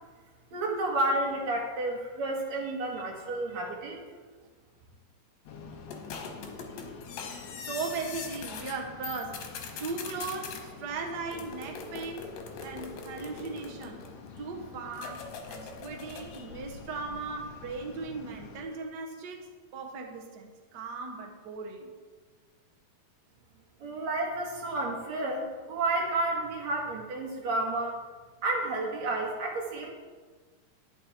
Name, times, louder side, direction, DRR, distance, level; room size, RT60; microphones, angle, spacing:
voice 1, 0.5-4.0 23.8-28.0 28.4-29.9, right 2 dB, 60° right, -1 dB, 3.0 m, -31 dB
voice 2, 2.6-3.0 3.5-3.6 7.6-12.3 12.6-14.0 14.4-19.5 19.7-21.9, right 4 dB, 80° right, 2 dB, 0.9 m, -38 dB
sound 1, 5.5-18.6, left 5 dB, 70° left, 2.0 m, -47 dB
sound 2, 5.9-8.8 9.0-10.6 11.3-14.3 15.0-16.5, left 5 dB, 90° left, 2.9 m, -42 dB
11.0 x 9.6 x 4.3 m, 1.4 s
omnidirectional pair, 3.8 m